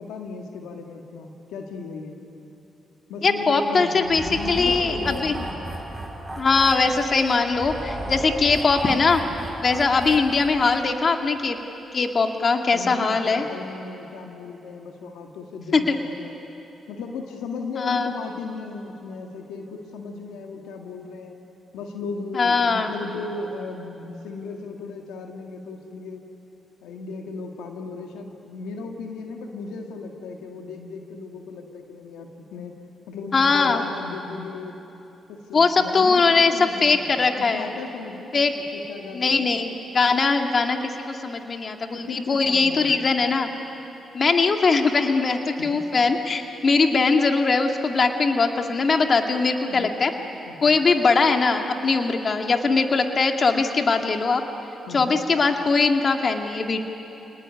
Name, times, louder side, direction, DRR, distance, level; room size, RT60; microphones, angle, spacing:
voice 1, 0.0-2.2 3.1-5.6 12.7-16.4 16.9-21.4 21.7-26.2 26.8-32.8 33.1-34.8 35.3-39.5 41.9-42.9 45.6-45.8 49.7-49.9 50.5-50.8 54.9-55.2, left 4 dB, 85° left, 2 dB, 1.9 m, -36 dB
voice 2, 3.2-4.2 4.5-5.3 6.4-9.2 9.6-11.6 11.9-13.5 15.7-16.0 17.8-18.1 22.3-22.9 33.3-33.8 35.5-36.5 36.8-37.7 38.3-38.5 39.1-43.5 44.1-50.1 50.6-54.4 54.9-56.8, left 4 dB, 50° left, 4 dB, 2.2 m, -21 dB
sound 1, 4.0-10.9, right 1 dB, 15° right, 7.1 m, -35 dB
29.0 x 19.5 x 9.7 m, 3.0 s
supercardioid pair, 50°, 0 cm